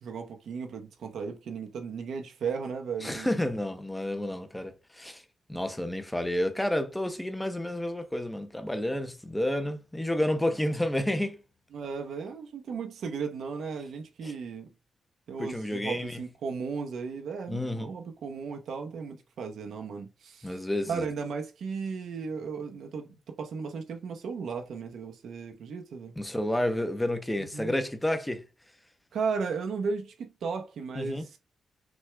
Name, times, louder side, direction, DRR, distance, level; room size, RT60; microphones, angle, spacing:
voice 1, 0.0-3.5 4.2-4.3 11.7-14.7 15.3-20.6 20.9-26.1 27.4-27.7 29.1-31.4, right 5 dB, 75° right, 0.7 m, -35 dB
voice 2, 3.0-5.2 5.5-11.4 14.2-14.3 15.4-16.2 17.5-17.9 20.4-21.1 26.2-28.4 30.9-31.2, left 1 dB, 5° left, 0.6 m, -30 dB
6.1 x 2.3 x 3.2 m
wide cardioid pair, 165°, 0 cm